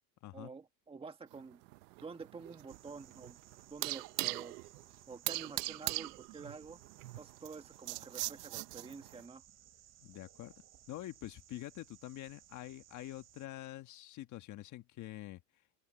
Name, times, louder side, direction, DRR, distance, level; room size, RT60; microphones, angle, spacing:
voice 1, 0.3-1.6 2.0-3.4 3.7-4.6 5.1-6.8 7.2-9.4, right 4 dB, 10° right, 1.6 m, -49 dB
sound 1, 1.3-9.2, right 21 dB, 80° right, 1.1 m, -41 dB
sound 2, 2.7-13.5, right 11 dB, 35° right, 3.2 m, -61 dB
voice 2, 10.0-10.5 10.9-15.4, left 15 dB, 40° left, 1.5 m, -46 dB
supercardioid pair, 140°, 46 cm